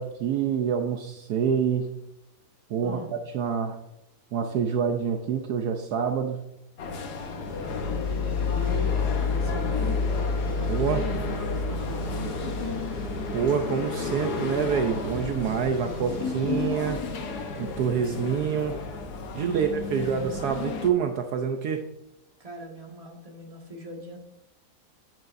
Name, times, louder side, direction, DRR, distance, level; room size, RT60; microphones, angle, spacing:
voice 1, 0.0-1.9 2.7-3.0 3.3-3.8 4.3-6.4 10.7-11.0 13.3-17.0 17.6-18.8 19.3-21.8, right 7 dB, 70° right, 5 dB, 1.2 m, -26 dB
voice 2, 2.8-3.1 8.5-10.1 10.5-12.9 19.3-20.5 22.4-24.2, left 1 dB, 20° right, -1 dB, 1.8 m, -40 dB
sound 1, 6.8-20.9, left 4 dB, 70° left, 1.5 m, -30 dB
sound 2, 7.2-16.8, left 1 dB, 55° left, 2.7 m, -45 dB
sound 3, 8.5-17.9, left 1 dB, 25° left, 0.4 m, -46 dB
9.3 x 8.9 x 2.6 m, 0.84 s
omnidirectional pair, 1.8 m